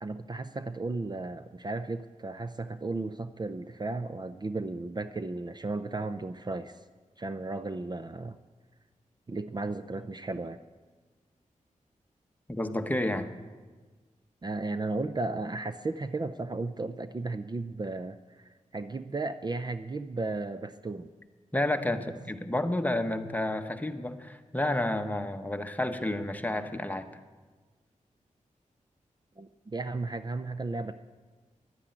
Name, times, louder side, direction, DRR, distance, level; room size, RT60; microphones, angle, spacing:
voice 1, 0.0-6.8 7.2-8.4 9.3-10.6 14.4-21.1 29.4-30.9, right 3 dB, 30° right, 10 dB, 0.5 m, -34 dB
voice 2, 12.5-13.3 21.5-27.1, left 1 dB, 10° left, 8 dB, 1.0 m, -30 dB
11.5 x 9.9 x 8.9 m, 1.4 s
wide cardioid pair, 75°, 14 cm